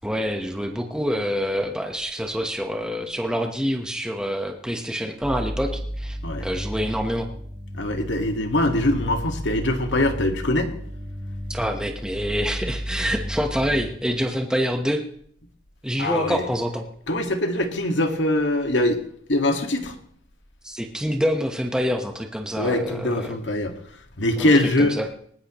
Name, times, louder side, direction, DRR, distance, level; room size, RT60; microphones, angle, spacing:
voice 1, 0.0-7.3 11.5-15.0 15.8-16.8 20.6-23.4 24.4-24.5 24.8-25.1, equal, 5° right, 4 dB, 1.2 m, -26 dB
sound 1, 5.2-13.9, equal, 25° right, 2.6 m, -33 dB
voice 2, 7.7-10.7 16.0-16.4 17.1-19.0 19.3-20.0 22.5-23.8 24.2-25.0, left 1 dB, 90° left, 5 dB, 1.9 m, -22 dB
20.0 x 19.0 x 3.1 m, 0.64 s
head